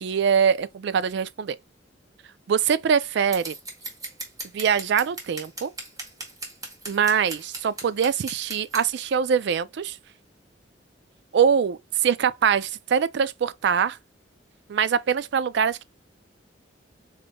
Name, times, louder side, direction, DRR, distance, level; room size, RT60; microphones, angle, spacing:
voice 1, 0.0-1.6 2.5-3.5 4.5-5.7 6.9-10.0 11.3-14.0 14.7-15.8, right 7 dB, 65° right, 0.4 m, -23 dB
Scissors, 3.3-8.8, right 2 dB, 20° right, 1.2 m, -37 dB
4.0 x 3.5 x 2.2 m
head